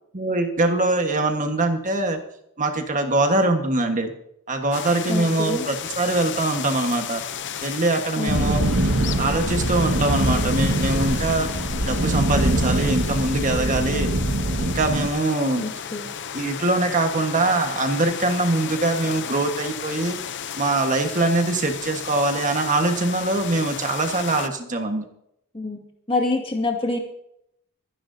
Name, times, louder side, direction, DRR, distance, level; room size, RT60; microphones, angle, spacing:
voice 1, 0.1-2.2 2.6-4.1 4.5-7.2 7.6-8.8 9.2-11.5 11.8-14.1 14.6-15.7 16.3-20.2 20.6-25.0, right 2 dB, 35° right, 5 dB, 1.5 m, -23 dB
sound 1, 4.7-24.5, left 8 dB, 55° left, 0.7 m, -33 dB
voice 2, 5.1-5.6 8.2-8.7 15.6-16.1 25.5-25.8 26.1-27.0, left 2 dB, 25° left, 1 dB, 2.1 m, -26 dB
sound 2, 8.3-15.1, right 1 dB, 75° right, 1.7 m, -23 dB
26.0 x 10.5 x 2.8 m, 0.76 s
head